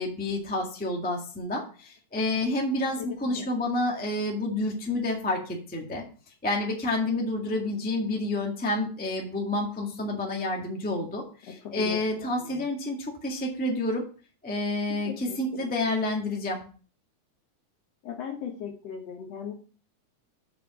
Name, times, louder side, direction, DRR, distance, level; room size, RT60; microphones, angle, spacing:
voice 1, 0.0-6.0 6.4-14.0 14.4-16.6, left 2 dB, 5° left, -1 dB, 1.0 m, -29 dB
voice 2, 3.0-3.4 11.8-12.5 15.1-15.4 18.0-19.5, left 7 dB, 65° left, 4 dB, 2.0 m, -38 dB
6.9 x 5.6 x 6.0 m, 0.39 s
omnidirectional pair, 3.5 m